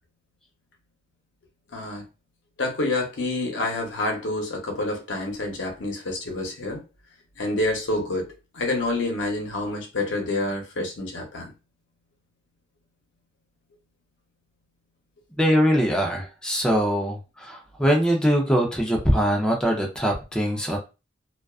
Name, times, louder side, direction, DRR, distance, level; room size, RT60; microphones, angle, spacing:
voice 1, 1.7-2.0 2.6-6.8 7.4-8.3 8.5-11.5, left 2 dB, 80° left, 2 dB, 0.8 m, -28 dB
voice 2, 15.4-20.8, equal, 5° left, 0 dB, 0.5 m, -22 dB
2.3 x 2.3 x 2.3 m, 0.30 s
head